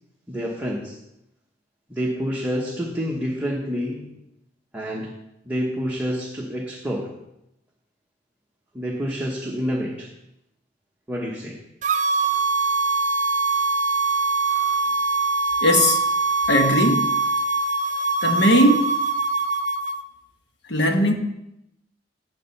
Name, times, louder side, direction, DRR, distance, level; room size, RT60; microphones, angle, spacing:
voice 1, 0.3-1.0 1.9-4.1 4.7-5.2 5.4-7.2 8.7-10.1 11.1-11.6, equal, 10° right, -3 dB, 1.0 m, -28 dB
sound 1, 11.8-20.0, right 3 dB, 40° right, 0.5 m, -23 dB
voice 2, 15.6-16.0 16.5-17.1 18.2-18.9 20.7-21.1, equal, 65° left, 4 dB, 1.2 m, -18 dB
8.7 x 4.9 x 6.9 m, 0.84 s
head